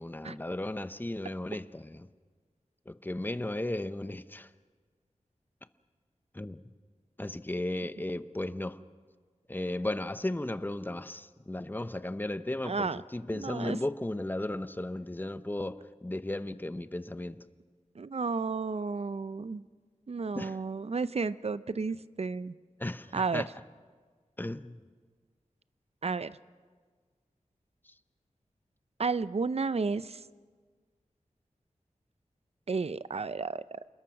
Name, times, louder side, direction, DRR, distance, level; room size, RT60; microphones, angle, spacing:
voice 1, 0.0-2.1 2.9-4.5 6.3-6.6 7.2-8.8 9.5-17.4 20.3-20.6 22.8-23.5 24.4-24.8 27.9-28.0, left 1 dB, 15° left, 0.7 m, -35 dB
voice 2, 12.6-13.0 13.3-13.8 18.0-19.6 20.1-22.5 23.1-23.5 26.0-26.4 29.0-30.2 32.7-33.8, right 4 dB, 55° right, 0.6 m, -32 dB
28.0 x 21.0 x 5.9 m
wide cardioid pair, 85°, 13 cm